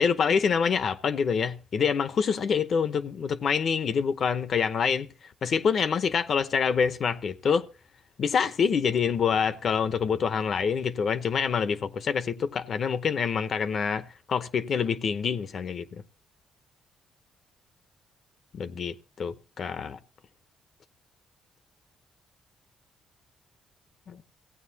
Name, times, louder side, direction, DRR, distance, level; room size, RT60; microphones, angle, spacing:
voice 1, 0.0-5.1 5.4-7.7 8.2-16.0 18.5-20.0 24.1-24.2, left 6 dB, 55° left, 0.8 m, -26 dB
16.0 x 9.0 x 2.8 m
cardioid pair, 90°, 0 cm